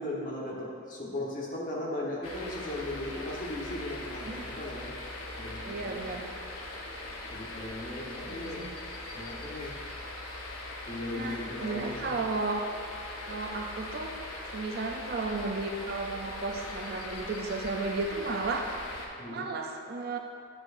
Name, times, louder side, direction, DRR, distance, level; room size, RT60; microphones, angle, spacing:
voice 1, 0.0-4.9 5.4-6.0 7.3-8.6 9.1-9.7 10.9-12.1 19.2-19.4, left 1 dB, 40° left, -4 dB, 1.2 m, -37 dB
sound 1, 2.2-19.1, left 2 dB, 85° left, 0.9 m, -41 dB
voice 2, 5.6-6.3 8.3-8.7 11.1-12.6 13.2-14.2 14.5-18.7 19.0-20.2, right 3 dB, 45° right, 3 dB, 0.5 m, -34 dB
9.0 x 6.7 x 2.6 m, 2.5 s
head